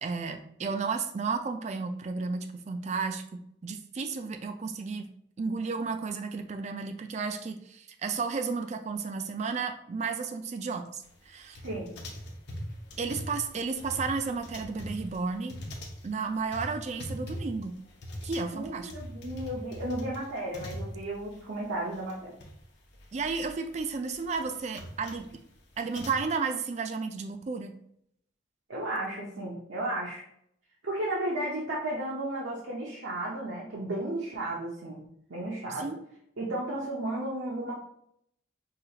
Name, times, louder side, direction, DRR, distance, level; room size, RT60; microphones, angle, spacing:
voice 1, 0.0-5.1 5.4-11.6 13.0-15.5 16.0-17.8 18.2-18.9 23.1-25.3 25.8-27.7 35.8-36.0, right 4 dB, 35° right, 7 dB, 0.3 m, -33 dB
sound 1, 11.6-21.4 21.6-21.7 21.9-22.5 22.8-26.2, equal, 55° left, 0.7 m, -41 dB
voice 2, 18.5-22.3 28.7-30.2 30.8-35.0 35.3-35.9 36.4-37.7, right 1 dB, 75° right, -4 dB, 0.7 m, -34 dB
4.8 x 2.3 x 2.8 m, 0.72 s
head